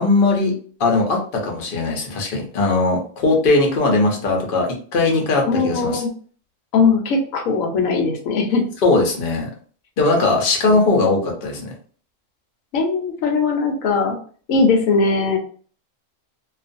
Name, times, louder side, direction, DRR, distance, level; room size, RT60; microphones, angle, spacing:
voice 1, 0.0-6.0 8.8-9.5 10.0-11.7, left 3 dB, 50° left, 0 dB, 0.8 m, -19 dB
voice 2, 5.5-6.1 6.7-8.6 10.7-11.3 12.7-14.2 14.5-15.4, left 4 dB, 85° left, 2 dB, 1.1 m, -20 dB
2.4 x 2.4 x 2.5 m, 0.43 s
omnidirectional pair, 1.4 m